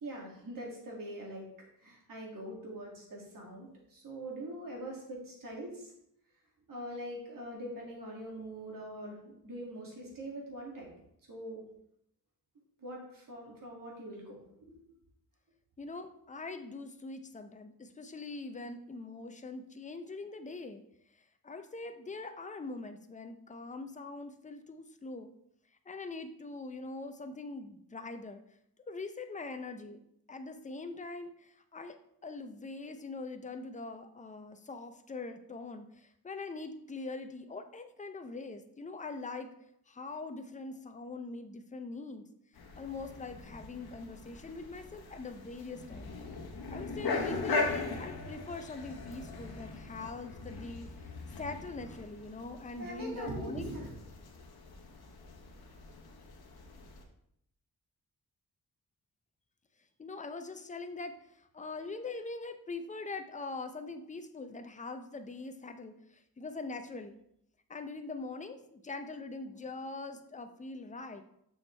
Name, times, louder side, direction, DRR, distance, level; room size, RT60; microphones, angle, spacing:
voice 1, 0.0-1.5 1.8-5.9 6.7-10.9 11.3-11.6 12.8-14.7 52.8-53.9, right 1 dB, 60° right, -2 dB, 2.2 m, -43 dB
voice 2, 15.8-20.8 21.4-25.3 25.9-28.4 28.9-30.0 30.3-39.5 39.9-42.3 42.8-46.1 46.7-50.9 51.4-53.7 60.0-67.2 67.7-71.2, left 3 dB, 20° left, 7 dB, 0.5 m, -42 dB
sound 1, 42.6-57.0, left 3 dB, 75° left, 1.1 m, -40 dB
7.0 x 6.2 x 3.2 m, 0.75 s
wide cardioid pair, 160°, 37 cm